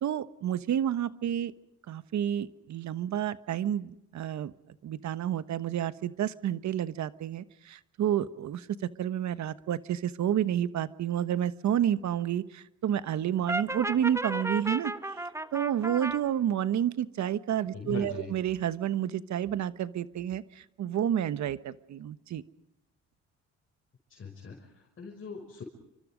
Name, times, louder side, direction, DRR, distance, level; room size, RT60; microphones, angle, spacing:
voice 1, 0.0-1.5 1.9-4.5 4.8-8.7 9.0-14.9 15.5-22.4, right 10 dB, 70° right, 13 dB, 1.3 m, -30 dB
Brass instrument, 13.5-16.2, right 2 dB, 10° right, 1.4 m, -33 dB
voice 2, 17.7-18.3 24.1-25.6, left 5 dB, 45° left, 1 dB, 6.2 m, -41 dB
29.5 x 25.0 x 5.2 m, 0.83 s
cardioid pair, 90°, 30 cm